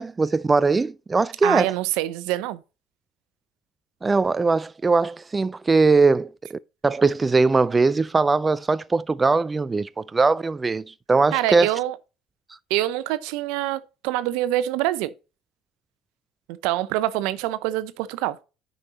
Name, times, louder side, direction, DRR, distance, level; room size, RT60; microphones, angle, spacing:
voice 1, 0.0-1.7 4.0-11.8, right 3 dB, 25° right, 0.3 m, -21 dB
voice 2, 1.4-2.6 11.3-12.0 12.7-15.1 16.6-18.4, right 15 dB, 75° right, 0.7 m, -25 dB
9.8 x 5.3 x 4.2 m
hypercardioid pair, 70°, 0 cm